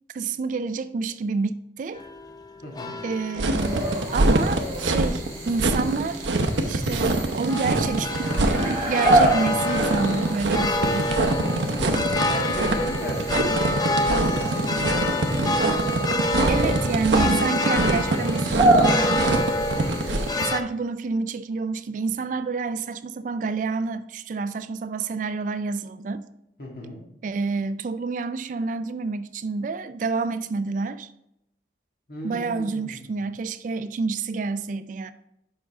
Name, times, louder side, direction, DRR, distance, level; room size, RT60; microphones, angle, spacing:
voice 1, 0.1-2.0 3.0-6.3 6.7-11.1 16.4-19.1 20.0-26.3 27.2-31.1 32.2-35.1, right 4 dB, 45° right, 0.3 m, -28 dB
sound 1, 1.9-20.6, left 2 dB, 20° left, 0.5 m, -28 dB
voice 2, 2.6-3.0 11.4-15.5 26.6-27.0 32.1-33.2, left 1 dB, 55° left, 1.9 m, -36 dB
sound 2, 3.4-20.4, right 2 dB, 85° right, 0.7 m, -24 dB
sound 3, 3.5-20.4, right 2 dB, 20° right, 2.5 m, -29 dB
7.0 x 5.4 x 3.6 m
head